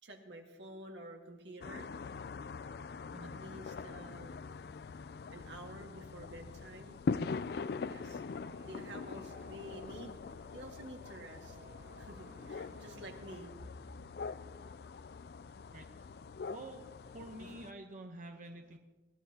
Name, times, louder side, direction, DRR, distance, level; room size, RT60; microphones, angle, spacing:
voice 1, 0.0-2.0 3.2-4.4 5.3-7.0 7.9-8.2 8.7-10.2 10.5-11.6 12.0-13.8 17.4-17.7 18.5-18.8, right 1 dB, 85° right, 2 dB, 1.9 m, -50 dB
sound 1, 1.6-17.7, left 4 dB, 60° left, 0.4 m, -43 dB
sound 2, 4.1-13.2, right 2 dB, 65° right, 1.6 m, -61 dB
voice 2, 15.7-16.0 16.5-16.8 17.1-18.8, right 2 dB, 45° right, 4 dB, 0.9 m, -48 dB
21.5 x 16.5 x 2.9 m, 1.2 s
head